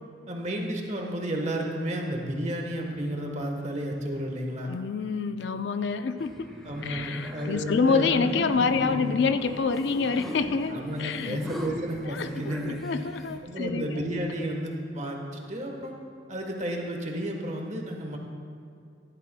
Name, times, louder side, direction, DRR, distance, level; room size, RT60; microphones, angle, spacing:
voice 1, 0.3-4.7 6.6-8.3 8.6-9.1 10.7-12.8 13.4-15.9 16.3-18.2, right 1 dB, 35° right, 2 dB, 1.2 m, -32 dB
voice 2, 4.7-6.5 6.8-11.4 12.1-14.0, left 5 dB, 65° left, 9 dB, 0.4 m, -27 dB
sound 1, 6.2-13.4, equal, ahead, 1.0 m, -40 dB
15.0 x 11.5 x 2.2 m, 2.6 s
head